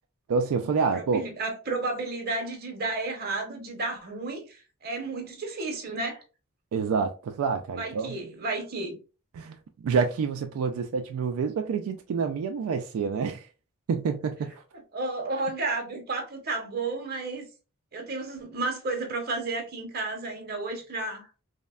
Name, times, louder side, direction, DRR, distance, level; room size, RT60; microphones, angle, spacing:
voice 1, 0.3-1.3 6.7-8.2 9.3-13.5 13.9-14.6, right 5 dB, 85° right, 0.3 m, -28 dB
voice 2, 0.9-6.2 7.8-9.0 14.9-17.4 17.9-21.3, right 3 dB, 45° right, 0.7 m, -32 dB
3.1 x 2.0 x 2.3 m
head